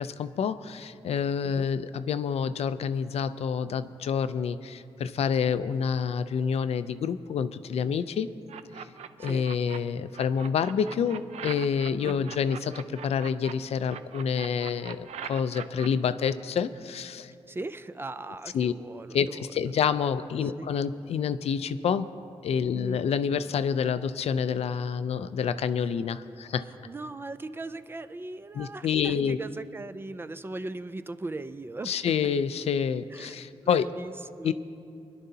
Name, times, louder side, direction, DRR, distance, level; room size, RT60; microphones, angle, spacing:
voice 1, 0.0-8.3 9.2-17.3 18.5-18.7 19.1-22.1 22.4-26.6 28.5-29.4 31.9-33.9 34.4-34.5, left 7 dB, 70° left, 13 dB, 0.4 m, -28 dB
sound 1, 8.5-9.8 10.1-13.5 13.9-15.9, right 8 dB, 85° right, 0.5 m, -41 dB
voice 2, 12.0-12.3 17.5-19.5 20.4-20.7 22.7-23.0 26.8-32.3 33.1-34.5, right 2 dB, 20° right, 11 dB, 0.4 m, -39 dB
24.5 x 11.0 x 2.8 m, 2.5 s
wide cardioid pair, 130°, 11 cm